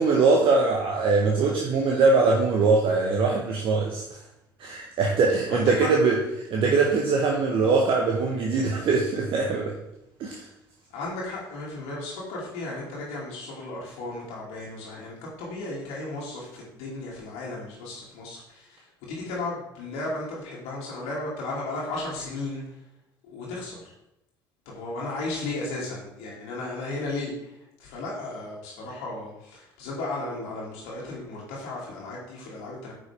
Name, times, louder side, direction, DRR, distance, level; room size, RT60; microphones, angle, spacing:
voice 1, 0.0-4.0 4.6-6.2 6.5-9.7 10.2-10.4, right 4 dB, 50° right, 0 dB, 1.2 m, -22 dB
voice 2, 5.5-5.9 10.9-22.6 23.2-23.9 24.7-32.9, left 2 dB, 60° left, -4 dB, 2.3 m, -35 dB
9.6 x 5.5 x 3.5 m, 0.86 s
figure-of-eight pair, 60°, 12 cm